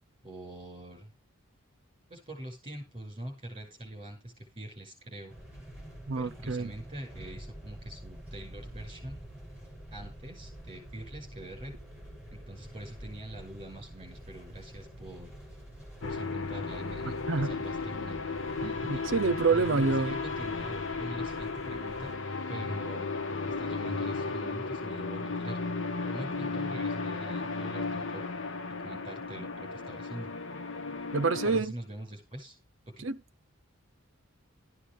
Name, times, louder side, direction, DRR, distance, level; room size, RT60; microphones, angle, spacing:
voice 1, 0.2-1.1 2.1-5.3 6.2-9.2 9.9-11.7 12.3-15.3 16.0-18.2 18.6-19.0 19.5-22.1 22.5-23.1 23.5-25.6 26.0-28.2 28.8-30.3 31.4-32.6 33.0-33.1, right 1 dB, 25° right, 5.8 m, -43 dB
sound 1, 5.3-22.2, right 1 dB, 5° right, 7.7 m, -47 dB
voice 2, 6.1-6.7 17.3-17.6 18.6-20.2 31.1-31.7 33.0-33.2, right 4 dB, 60° right, 0.7 m, -27 dB
sound 2, 16.0-31.6, left 4 dB, 60° left, 0.9 m, -35 dB
13.5 x 9.9 x 3.4 m
head